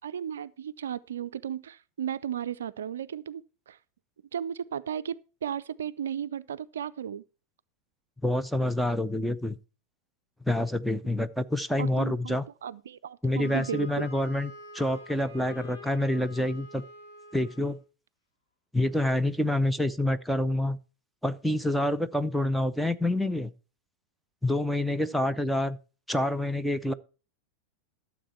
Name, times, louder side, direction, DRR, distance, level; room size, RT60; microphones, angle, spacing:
voice 1, 0.0-3.4 3.7-3.8 4.3-7.2 11.8-12.4 12.6-14.1, right 9 dB, 65° right, 0.4 m, -35 dB
voice 2, 8.2-9.6 10.4-12.4 13.2-16.8 17.3-17.8 18.7-20.8 21.2-23.5 24.4-25.8 26.1-26.9, left 1 dB, ahead, 0.6 m, -27 dB
Wind instrument woodwind instrument, 13.4-17.8, left 2 dB, 65° left, 4.0 m, -47 dB
12.5 x 7.2 x 4.4 m
figure-of-eight pair, 90°, 0 cm